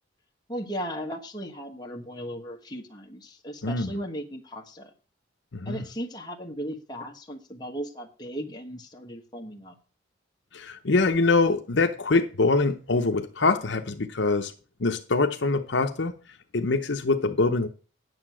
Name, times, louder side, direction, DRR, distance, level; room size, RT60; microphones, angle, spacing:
voice 1, 0.5-4.9 5.6-9.7, equal, 20° left, 2 dB, 1.4 m, -36 dB
voice 2, 5.5-5.8 10.5-14.5 14.8-16.1 16.5-17.7, left 3 dB, 65° left, 6 dB, 0.8 m, -24 dB
9.6 x 6.9 x 6.2 m, 0.36 s
head